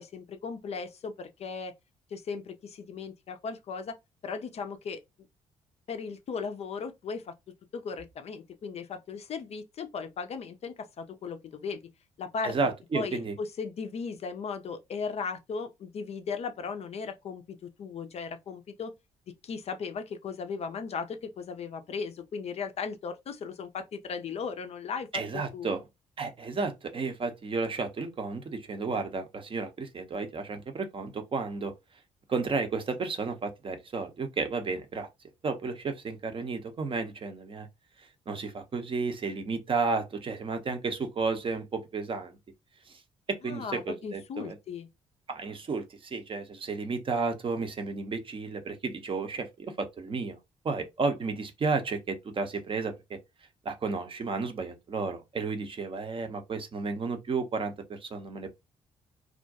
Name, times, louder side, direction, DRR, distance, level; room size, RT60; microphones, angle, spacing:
voice 1, 0.0-1.7 2.1-4.0 4.2-5.0 5.9-7.3 7.7-11.8 12.2-12.6 12.9-18.9 19.4-25.7 43.4-44.9, left 5 dB, 35° left, 0.4 m, -37 dB
voice 2, 12.4-13.3 25.1-25.8 26.2-31.7 32.3-35.1 35.4-37.7 38.3-42.3 42.9-43.0 43.3-44.6 45.3-50.4 50.6-53.2 53.6-58.5, right 4 dB, 30° right, 0.6 m, -32 dB
2.4 x 2.1 x 2.7 m
figure-of-eight pair, 45°, 17 cm